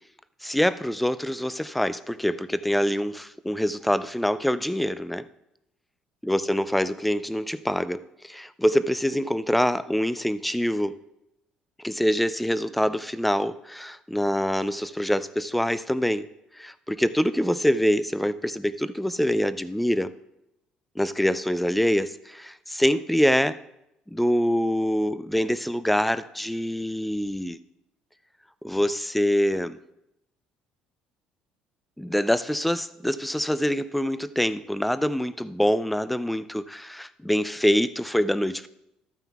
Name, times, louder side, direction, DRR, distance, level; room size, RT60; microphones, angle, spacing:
voice 1, 0.4-5.2 6.3-11.0 11.8-16.3 16.6-20.1 21.0-23.6 24.1-27.6 28.6-29.8 32.0-38.7, equal, 5° left, 14 dB, 0.3 m, -25 dB
13.5 x 9.1 x 2.3 m, 0.84 s
cardioid pair, 135°, 2 cm